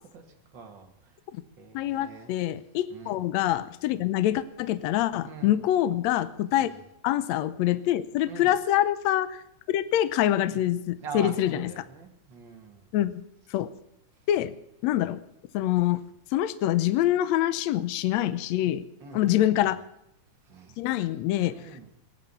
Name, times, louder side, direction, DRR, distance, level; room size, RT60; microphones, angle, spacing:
voice 1, 0.5-0.9 1.6-2.3 2.9-3.2 5.2-5.6 6.5-6.8 8.3-8.5 10.4-10.6 11.0-12.8 19.0-19.4 20.5-20.8 21.5-21.9, right 5 dB, 40° right, 3 dB, 2.4 m, -43 dB
voice 2, 1.7-6.7 7.0-9.4 9.7-11.7 12.9-13.1 13.5-13.7 14.3-14.5 14.8-15.2 15.5-16.0 16.3-18.8 19.1-19.8 20.8-21.6, left 13 dB, 75° left, 14 dB, 1.9 m, -25 dB
20.0 x 10.5 x 7.0 m, 0.80 s
omnidirectional pair, 3.4 m